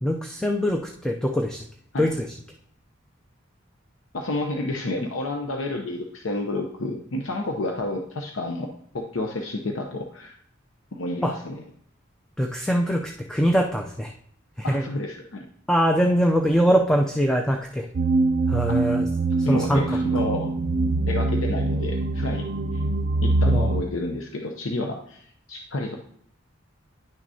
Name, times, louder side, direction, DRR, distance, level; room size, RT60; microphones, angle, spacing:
voice 1, 0.0-1.6 2.0-2.2 11.2-11.3 12.4-14.1 14.6-14.8 15.7-17.9 18.5-19.1 19.5-19.8 23.5-23.7, equal, 5° left, 2 dB, 0.4 m, -22 dB
voice 2, 4.1-8.7 8.9-10.4 10.9-11.6 14.6-15.5 18.7-18.8 19.4-20.5 21.1-22.5 22.7-22.8 23.2-26.0, left 2 dB, 75° left, 2 dB, 0.7 m, -30 dB
sound 1, 17.9-23.8, right 2 dB, 50° right, 0.5 m, -23 dB
10.5 x 6.1 x 2.7 m, 0.67 s
head